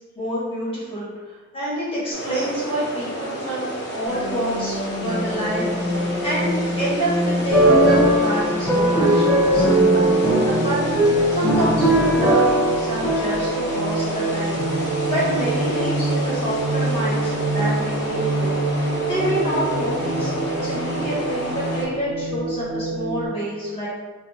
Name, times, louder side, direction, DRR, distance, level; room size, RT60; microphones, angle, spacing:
voice 1, 0.1-1.1 1.5-9.3 9.5-14.6 15.1-18.5 19.0-20.3 20.6-23.9, right 1 dB, 25° left, -9 dB, 1.3 m, -27 dB
sound 1, 2.1-21.8, right 1 dB, 55° left, 0.8 m, -30 dB
sound 2, 4.1-23.3, right 1 dB, 85° right, 0.8 m, -26 dB
sound 3, 7.5-13.9, right 1 dB, 5° left, 0.7 m, -19 dB
2.7 x 2.3 x 4.1 m, 1.3 s
head